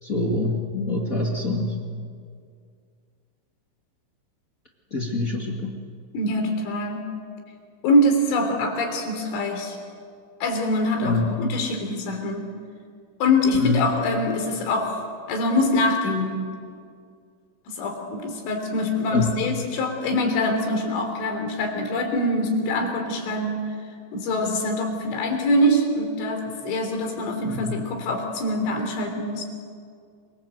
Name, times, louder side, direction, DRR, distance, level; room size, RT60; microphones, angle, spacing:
voice 1, 0.0-1.8 4.9-5.7 11.0-11.3 13.5-13.8 19.1-19.3 27.4-27.7, left 3 dB, 65° left, 0 dB, 0.8 m, -25 dB
voice 2, 6.1-7.2 7.8-9.8 10.4-12.5 13.2-15.0 15.3-16.5 17.7-23.6 24.1-29.4, left 1 dB, 90° left, 3 dB, 5.9 m, -24 dB
27.0 x 23.5 x 7.9 m, 2.2 s
omnidirectional pair, 5.3 m